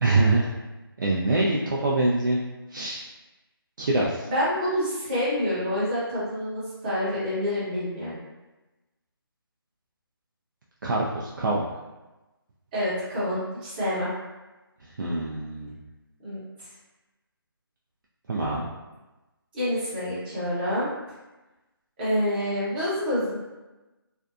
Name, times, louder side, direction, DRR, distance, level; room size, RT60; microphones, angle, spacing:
voice 1, 0.0-0.5 1.0-2.4 2.7-3.1 3.8-4.3 10.8-11.7 14.8-15.8 18.3-18.7, right 2 dB, 55° right, -5 dB, 0.4 m, -24 dB
voice 2, 4.3-8.2 12.7-14.1 16.2-16.4 19.5-20.9 22.0-23.4, equal, 20° right, -10 dB, 0.9 m, -27 dB
2.5 x 2.2 x 2.4 m, 1.1 s
figure-of-eight pair, 160°, 13 cm